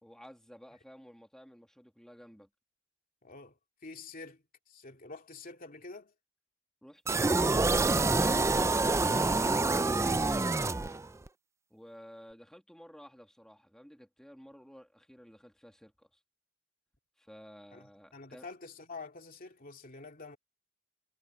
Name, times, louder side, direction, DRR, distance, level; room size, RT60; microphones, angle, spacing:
voice 1, 0.0-2.5 6.8-10.7 11.7-16.2 17.2-18.5, equal, 5° left, 2.0 m, -52 dB
voice 2, 3.2-6.1 17.7-20.4, left 3 dB, 45° left, 2.6 m, -47 dB
sound 1, 7.1-11.3, right 3 dB, 15° right, 0.4 m, -27 dB
head